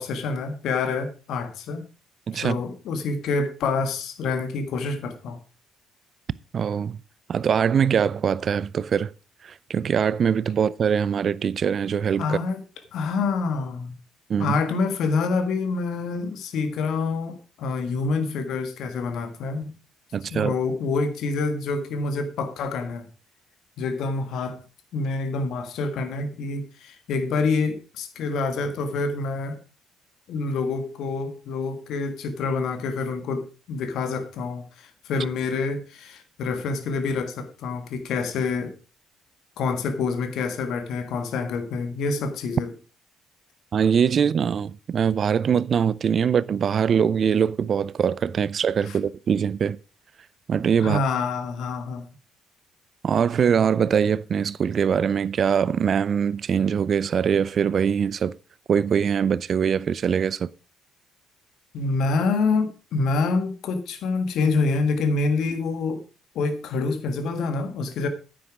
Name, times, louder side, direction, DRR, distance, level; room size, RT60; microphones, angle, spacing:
voice 1, 0.0-1.8 2.3-5.4 12.2-12.6 12.9-14.0 14.4-19.7 20.3-23.1 23.8-24.6 24.9-29.6 30.3-38.7 39.6-42.7 48.9-49.0 50.8-52.0 61.7-66.0 66.4-68.1, left 4 dB, 65° left, 1.7 m, -27 dB
voice 2, 2.3-2.6 6.5-7.0 7.3-9.1 9.4-12.4 14.3-14.6 20.1-20.5 43.7-49.8 50.5-51.0 53.0-58.4 58.7-60.5, right 7 dB, 50° right, 0.5 m, -22 dB
9.6 x 8.7 x 4.7 m
hypercardioid pair, 50°, 0 cm